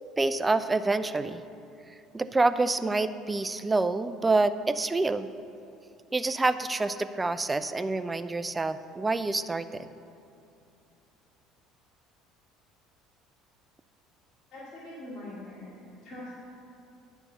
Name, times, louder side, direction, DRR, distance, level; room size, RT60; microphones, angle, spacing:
voice 1, 0.2-1.4 2.1-5.3 6.1-9.9, right 3 dB, 20° right, 12 dB, 0.4 m, -27 dB
voice 2, 14.5-15.7 16.0-16.3, left 1 dB, 45° left, -8 dB, 2.3 m, -42 dB
9.9 x 4.6 x 6.8 m, 2.6 s
hypercardioid pair, 75°, 0 cm